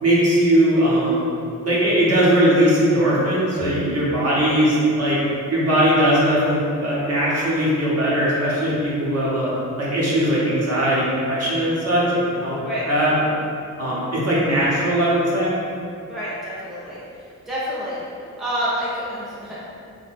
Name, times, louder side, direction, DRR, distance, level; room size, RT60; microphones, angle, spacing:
voice 1, 0.0-1.3 1.6-5.2 5.5-9.5 9.8-12.6 12.9-13.3 13.8-15.6, right 1 dB, 45° right, -7 dB, 0.7 m, -19 dB
voice 2, 16.1-17.0 17.5-18.0 18.4-19.7, equal, ahead, -10 dB, 0.6 m, -28 dB
2.5 x 2.1 x 3.4 m, 2.5 s
wide cardioid pair, 145°, 33 cm